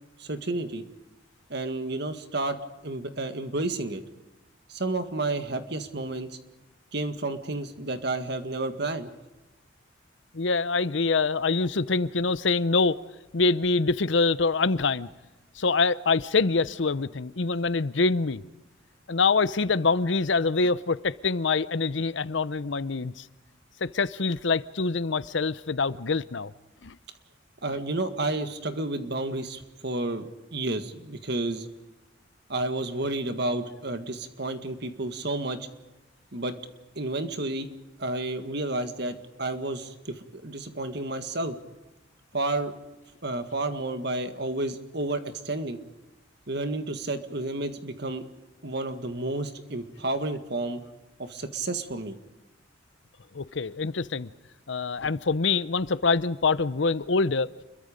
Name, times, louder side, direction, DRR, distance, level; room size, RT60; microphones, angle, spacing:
voice 1, 0.2-0.8 1.5-2.6 2.8-4.0 4.7-6.3 6.9-9.1 27.6-31.7 32.5-35.7 36.3-36.5 37.0-37.7 38.0-41.6 42.3-42.7 43.2-45.8 46.5-48.3 48.6-50.8 51.2-52.2, right 2 dB, 55° right, 1.9 m, -31 dB
voice 2, 10.3-13.0 13.3-15.1 15.6-18.4 19.1-23.2 23.8-26.5 26.8-27.0 53.3-54.3 54.7-57.5, left 4 dB, 70° left, 0.7 m, -25 dB
29.0 x 22.5 x 5.2 m
head